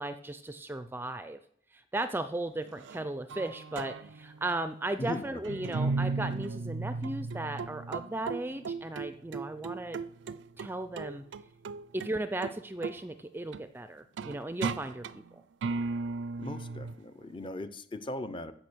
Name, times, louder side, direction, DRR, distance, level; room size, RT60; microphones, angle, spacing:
voice 1, 0.0-1.4 1.7-10.0 10.6-11.2 11.9-15.1, right 2 dB, 10° right, 10 dB, 0.4 m, -36 dB
sound 1, 2.7-3.0 3.3-4.7 5.4-10.7 11.0-12.1 12.4-12.6 12.8-13.0 13.5-13.6 14.2-15.3 15.6-17.0, right 4 dB, 90° right, 0.4 m, -35 dB
voice 2, 5.0-5.9 16.4-18.5, left 1 dB, 25° left, 11 dB, 0.7 m, -39 dB
15.0 x 5.7 x 6.2 m, 0.65 s
head